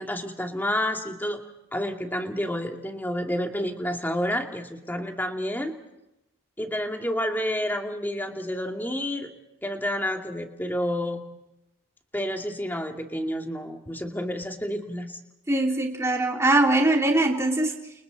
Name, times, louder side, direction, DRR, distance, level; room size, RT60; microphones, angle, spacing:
voice 1, 0.0-1.4 1.7-5.8 6.6-9.3 9.6-11.2 12.1-15.2, equal, 10° left, 3 dB, 2.5 m, -29 dB
voice 2, 15.5-17.7, right 2 dB, 15° right, 0 dB, 2.5 m, -22 dB
30.0 x 30.0 x 4.1 m, 0.89 s
head